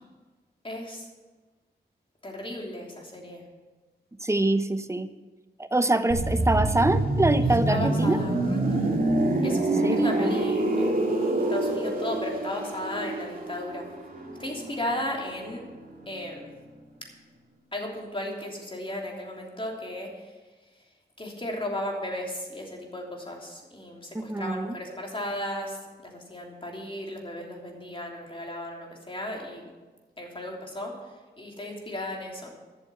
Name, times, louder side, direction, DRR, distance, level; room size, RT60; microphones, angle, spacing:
voice 1, 0.6-1.1 2.2-3.4 7.7-9.0 9.4-11.0 11.5-13.8 14.4-15.6 16.1-16.5 17.7-20.3 21.2-29.7 30.2-30.9 31.4-32.5, left 1 dB, 30° left, 0 dB, 3.1 m, -35 dB
voice 2, 4.2-5.1 5.6-8.2 9.8-10.4 24.1-24.7, right 2 dB, 15° right, 11 dB, 0.7 m, -25 dB
sound 1, 6.1-15.8 16.0-16.2, right 2 dB, 50° right, 2.0 m, -26 dB
12.5 x 6.9 x 7.0 m, 1.3 s
cardioid pair, 60°, 19 cm